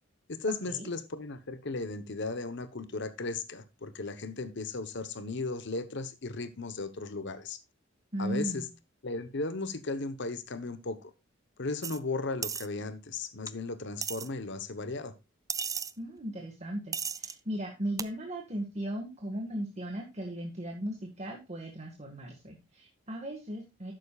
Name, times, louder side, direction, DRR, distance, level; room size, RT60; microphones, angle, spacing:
voice 1, 0.3-7.6 8.2-8.7 9.0-11.1 11.6-15.1, left 3 dB, 60° left, 1.1 m, -36 dB
voice 2, 8.1-8.7 16.0-23.9, right 1 dB, 35° right, 1.8 m, -37 dB
sound 1, 11.8-12.0 12.4-12.7 13.5-13.6 14.0-14.3 15.5-15.9 16.9-17.3 18.0-18.1, right 6 dB, 15° right, 0.4 m, -34 dB
12.0 x 9.2 x 2.4 m
head